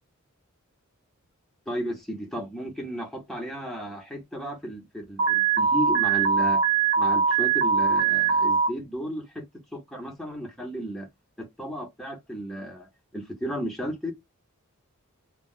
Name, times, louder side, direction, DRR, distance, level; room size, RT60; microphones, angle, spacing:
voice 1, 1.7-6.6 7.0-9.4 9.7-11.1 11.4-14.1, equal, ahead, 0.9 m, -34 dB
Alarm, 5.2-8.7, right 6 dB, 60° right, 0.8 m, -22 dB
2.4 x 2.1 x 3.7 m
head